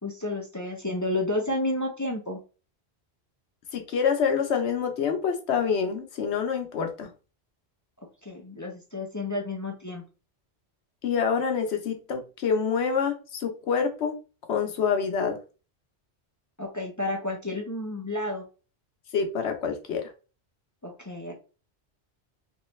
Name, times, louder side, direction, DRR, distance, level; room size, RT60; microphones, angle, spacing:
voice 1, 0.0-2.4 8.0-10.0 16.6-18.5 20.8-21.3, left 1 dB, 20° left, 1 dB, 0.6 m, -31 dB
voice 2, 3.7-7.1 11.0-14.1 14.5-15.4 19.1-20.1, left 6 dB, 80° left, 5 dB, 1.1 m, -26 dB
3.2 x 3.1 x 3.1 m, 0.33 s
omnidirectional pair, 1.1 m